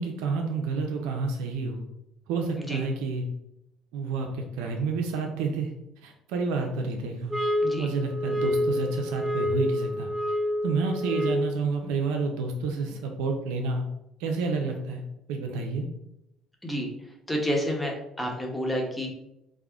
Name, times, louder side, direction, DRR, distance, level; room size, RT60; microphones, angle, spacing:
voice 1, 0.0-1.8 2.3-3.2 3.9-5.7 6.0-7.3 7.8-10.1 10.6-13.8 14.2-15.0 15.3-15.9, right 4 dB, 85° right, 2 dB, 0.4 m, -29 dB
sound 1, 7.3-11.7, left 1 dB, 20° right, 0.6 m, -28 dB
voice 2, 17.3-19.1, equal, 10° left, 0 dB, 0.9 m, -29 dB
3.6 x 2.0 x 3.4 m, 0.86 s
supercardioid pair, 90°, 0 cm